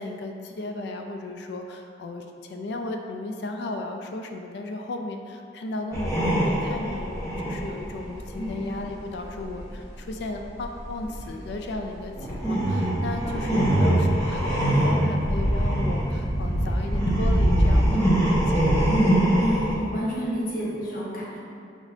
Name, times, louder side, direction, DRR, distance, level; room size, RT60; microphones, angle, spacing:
voice 1, 0.0-19.0, left 2 dB, 60° left, 4 dB, 0.3 m, -35 dB
sound 1, 5.9-9.8 10.1-19.8, right 1 dB, 15° left, 0.9 m, -23 dB
voice 2, 19.4-21.4, equal, 45° left, -6 dB, 0.9 m, -30 dB
4.7 x 4.0 x 2.6 m, 2.5 s
head